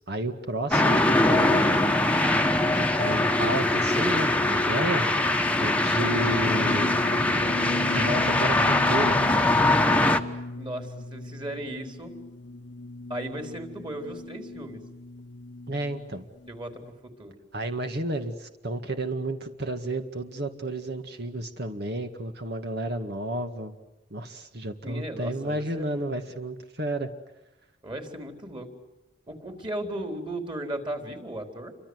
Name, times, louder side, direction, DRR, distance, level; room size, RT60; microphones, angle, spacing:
voice 1, 0.1-2.1 2.7-5.1 5.6-7.0 7.8-9.2 15.7-16.3 17.5-23.8 24.1-27.1, right 1 dB, 60° right, 6 dB, 2.0 m, -32 dB
sound 1, 0.7-10.2, left 2 dB, 10° left, 1.3 m, -22 dB
sound 2, 6.0-16.9, left 2 dB, 70° left, 1.1 m, -37 dB
voice 2, 10.6-12.1 13.1-14.8 16.5-17.4 24.8-26.0 27.8-28.7 29.3-31.7, right 1 dB, 25° right, 5 dB, 4.1 m, -36 dB
29.5 x 25.0 x 8.1 m, 1.0 s
head